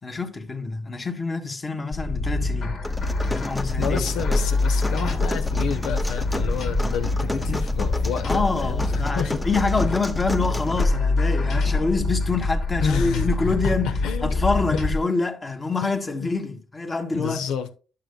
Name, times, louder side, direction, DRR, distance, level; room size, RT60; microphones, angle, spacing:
voice 1, 0.0-2.8 3.3-4.0 7.5-7.6 8.2-13.9 14.2-17.4, left 3 dB, 30° left, 1.5 m, -26 dB
sound 1, 1.9-15.0, left 2 dB, 70° left, 2.0 m, -25 dB
sound 2, 2.8-10.8, left 1 dB, 15° left, 1.0 m, -33 dB
voice 2, 3.8-9.4 12.8-14.4 14.7-14.8 15.8-16.3 17.1-17.7, left 7 dB, 90° left, 0.9 m, -30 dB
11.5 x 6.5 x 2.2 m
cardioid pair, 90°, 0 cm